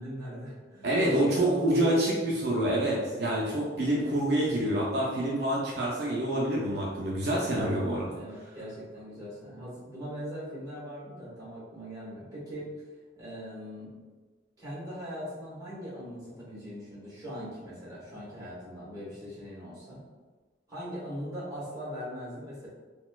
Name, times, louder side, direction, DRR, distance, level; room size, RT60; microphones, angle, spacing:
voice 1, 0.0-2.2 8.1-12.7 13.1-13.9 14.6-20.0 20.7-22.7, equal, 20° right, -9 dB, 1.2 m, -40 dB
voice 2, 0.8-8.1, right 1 dB, 60° right, -4 dB, 0.5 m, -27 dB
4.0 x 2.2 x 2.3 m, 1.3 s
head